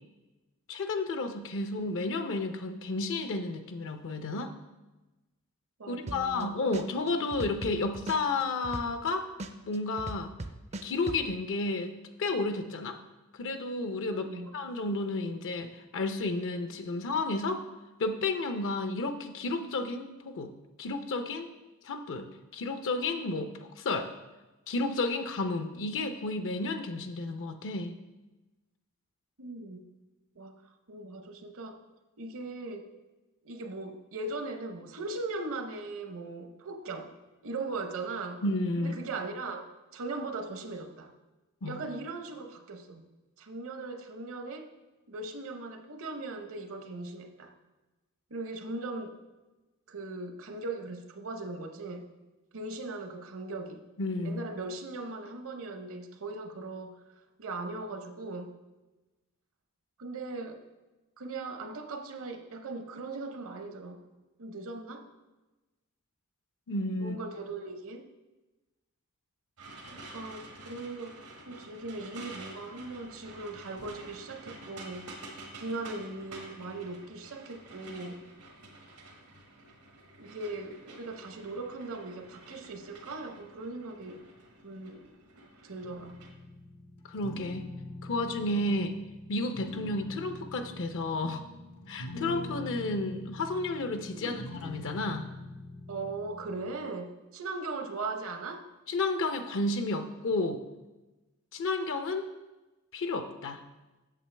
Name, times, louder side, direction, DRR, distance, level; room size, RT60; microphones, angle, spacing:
voice 1, 0.7-4.5 5.9-9.3 9.7-10.3 10.8-11.9 12.2-13.0 13.4-14.3 14.5-17.6 18.0-20.5 20.8-21.5 21.8-22.3 22.5-23.5 23.8-24.1 24.7-27.9 38.4-39.0 41.6-41.8 54.0-54.4 66.7-67.2 87.1-87.7 88.0-88.9 89.3-91.4 91.9-95.3 98.9-100.6 101.5-102.3 102.9-103.6, left 2 dB, 60° left, 8 dB, 0.5 m, -32 dB
voice 2, 5.8-6.5 14.1-14.5 29.4-29.8 30.4-30.6 30.9-31.8 32.2-32.9 33.4-37.1 37.4-38.4 38.8-41.1 41.6-43.0 43.4-44.7 45.1-47.5 48.3-49.2 49.9-52.0 52.5-53.8 54.2-57.0 57.4-58.6 60.0-60.6 61.2-64.0 64.4-65.1 67.0-68.1 69.9-71.2 71.5-75.0 75.5-78.2 80.2-84.2 84.6-85.1 85.6-86.2 88.7-88.9 94.2-94.4 95.9-98.7, right 3 dB, 65° right, 6 dB, 0.8 m, -39 dB
sound 1, 6.1-6.4 6.7-9.1 9.4-11.2, right 2 dB, 30° right, 0.4 m, -38 dB
sound 2, 69.6-86.3, right 2 dB, 90° right, 1.5 m, -49 dB
sound 3, 85.8-96.7, left 2 dB, 80° left, 0.9 m, -44 dB
8.3 x 6.8 x 3.3 m, 1.1 s
head